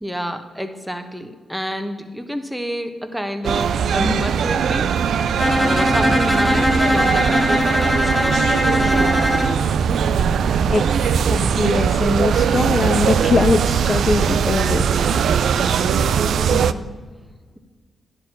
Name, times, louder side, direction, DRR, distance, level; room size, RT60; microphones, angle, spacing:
voice 1, 0.0-4.9 5.3-9.1 16.3-16.8, equal, 5° right, 6 dB, 1.2 m, -29 dB
sound 1, 3.4-16.7, right 7 dB, 80° right, 0.3 m, -20 dB
Bowed string instrument, 5.4-9.6, left 1 dB, 15° left, 0.7 m, -20 dB
voice 2, 10.7-15.0, left 3 dB, 40° left, 8 dB, 0.4 m, -22 dB
10.5 x 4.5 x 7.4 m, 1.4 s
cardioid pair, 55°, 0 cm